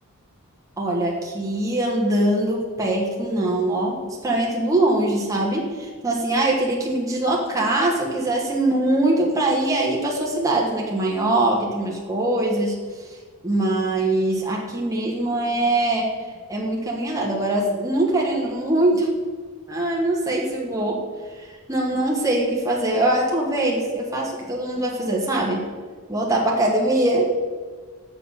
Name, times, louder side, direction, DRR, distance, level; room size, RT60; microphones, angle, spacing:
voice 1, 0.8-12.7 13.4-16.1 16.5-19.1 19.7-21.0 21.7-25.6 26.1-27.3, right 1 dB, 15° right, -3 dB, 1.3 m, -22 dB
6.9 x 6.8 x 5.6 m, 1.5 s
head